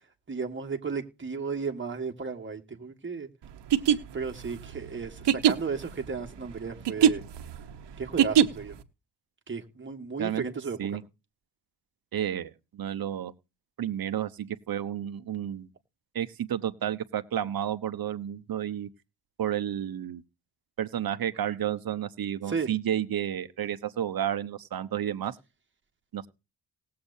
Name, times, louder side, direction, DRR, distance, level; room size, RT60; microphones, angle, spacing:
voice 1, 0.3-3.3 4.1-7.2 8.0-8.8 9.5-10.8 22.5-22.7, right 5 dB, 30° right, 1.9 m, -34 dB
sound 1, 3.6-8.8, right 8 dB, 90° right, 1.1 m, -24 dB
voice 2, 12.1-13.3 13.8-15.7 16.1-18.9 19.4-20.2 20.8-25.4 26.1-26.3, right 10 dB, 60° right, 1.0 m, -31 dB
19.5 x 7.7 x 2.7 m
wide cardioid pair, 120°, 40 cm